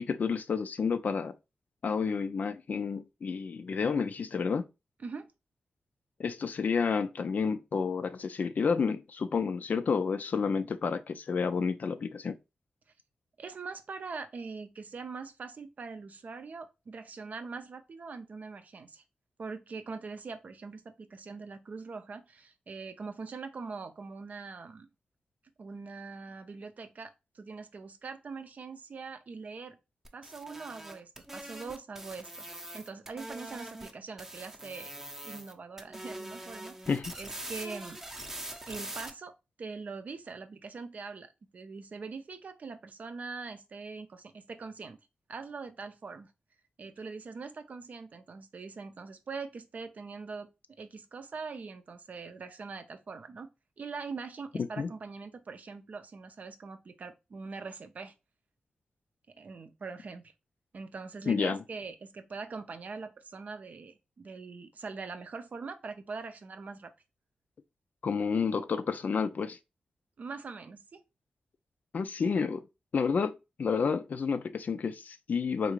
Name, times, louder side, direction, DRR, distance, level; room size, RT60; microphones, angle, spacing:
voice 1, 0.0-1.3 1.8-4.7 6.2-12.4 36.9-37.1 54.8-54.9 61.3-61.6 68.0-69.6 71.9-72.6 72.9-73.3 73.6-75.7, left 5 dB, 60° left, 0.4 m, -30 dB
voice 2, 13.4-19.0 19.4-24.9 25.6-29.8 30.1-34.9 35.2-36.9 37.2-38.0 38.7-39.3 39.6-45.0 45.3-46.3 46.8-50.5 50.8-53.5 53.8-58.1 59.3-60.3 60.7-66.9 70.2-71.0, right 4 dB, 55° right, 0.5 m, -42 dB
sound 1, 30.0-33.9 34.2-35.5 35.8-39.1, right 1 dB, 15° right, 0.6 m, -43 dB
3.6 x 2.5 x 3.0 m
cardioid pair, 70°, 3 cm